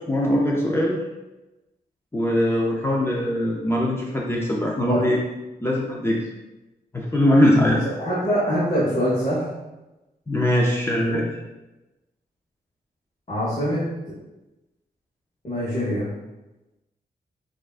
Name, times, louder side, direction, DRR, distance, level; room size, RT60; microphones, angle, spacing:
voice 1, 0.1-1.0 2.1-5.2 5.6-6.2 6.9-7.8 10.3-11.3, left 1 dB, 15° left, -3 dB, 0.5 m, -21 dB
voice 2, 7.6-9.5 11.1-11.2 13.3-13.9 15.4-16.1, equal, 40° left, -8 dB, 1.2 m, -24 dB
6.2 x 2.4 x 2.4 m, 1.0 s
wide cardioid pair, 95°, 17 cm